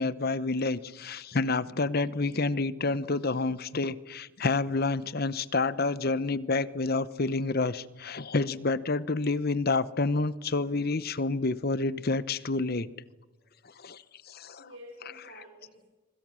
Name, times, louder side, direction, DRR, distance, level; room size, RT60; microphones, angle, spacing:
voice 1, 0.0-12.9 13.8-14.0 14.3-14.6, left 3 dB, 50° left, 16 dB, 0.9 m, -28 dB
voice 2, 7.8-8.4 10.3-10.4 13.4-13.5 13.9-14.2 14.6-15.8, equal, 80° right, 1 dB, 4.8 m, -52 dB
25.5 x 24.0 x 6.4 m, 1.2 s
head